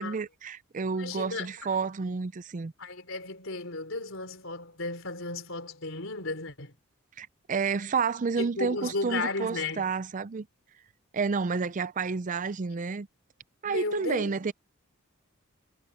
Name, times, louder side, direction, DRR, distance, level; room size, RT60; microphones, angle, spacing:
voice 1, 0.0-2.7 7.2-10.5 11.1-13.1 13.6-14.5, right 5 dB, 35° right, 0.4 m, -30 dB
voice 2, 1.0-1.5 2.8-6.7 8.4-9.9 13.6-14.3, left 3 dB, 65° left, 4.0 m, -34 dB
head